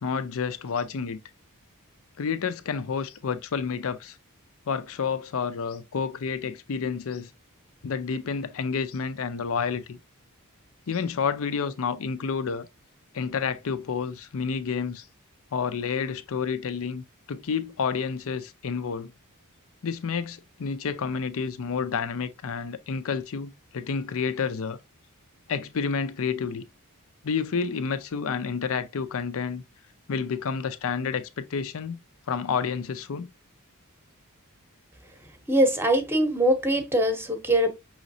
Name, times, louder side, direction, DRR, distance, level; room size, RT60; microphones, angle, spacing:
voice 1, 0.0-1.2 2.2-4.2 4.7-7.3 7.8-10.0 10.9-12.7 13.1-15.1 15.5-19.1 19.8-24.8 25.5-26.6 27.2-29.6 30.1-32.0 32.3-33.3, left 5 dB, 70° left, 0.5 m, -29 dB
voice 2, 35.5-37.7, right 1 dB, 10° right, 0.8 m, -22 dB
5.6 x 3.1 x 2.6 m
head